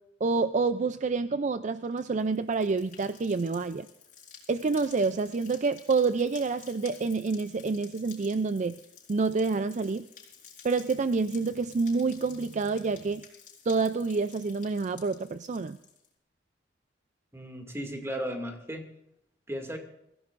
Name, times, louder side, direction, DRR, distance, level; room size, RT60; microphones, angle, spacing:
voice 1, 0.2-3.9 4.5-8.8 9.1-10.1 10.6-13.2 13.7-15.8, right 4 dB, 40° right, 12 dB, 0.4 m, -28 dB
sound 1, 1.8-16.1, left 7 dB, 45° left, 4.6 m, -52 dB
voice 2, 17.3-18.8 19.5-19.8, equal, 15° right, 3 dB, 2.3 m, -35 dB
24.0 x 16.0 x 2.6 m, 0.82 s
head